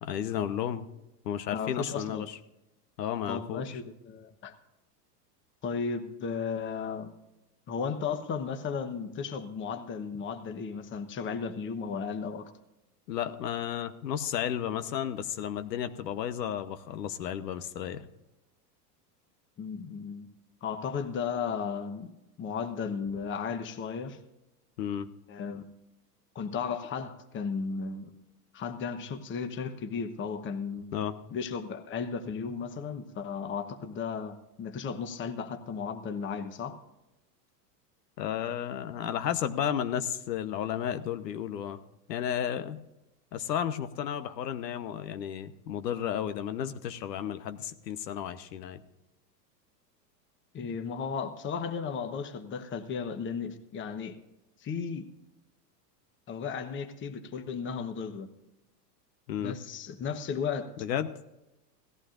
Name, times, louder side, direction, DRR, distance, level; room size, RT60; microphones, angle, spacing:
voice 1, 0.0-0.9 1.2-2.4 3.0-3.8 13.1-18.0 24.8-25.1 30.9-31.1 38.2-41.8 42.1-42.8 43.3-48.8 59.3-59.6 60.8-61.2, left 9 dB, 90° left, 10 dB, 1.1 m, -33 dB
voice 2, 1.5-2.3 3.3-4.6 5.6-7.1 7.7-12.5 19.6-20.3 20.6-22.1 22.4-24.2 25.3-25.6 26.3-28.1 28.5-30.9 31.3-36.8 50.5-54.2 54.6-55.0 56.3-58.3 59.4-60.7, left 6 dB, 25° left, 7 dB, 1.1 m, -35 dB
18.0 x 14.5 x 2.5 m, 0.94 s
supercardioid pair, 135°, 48 cm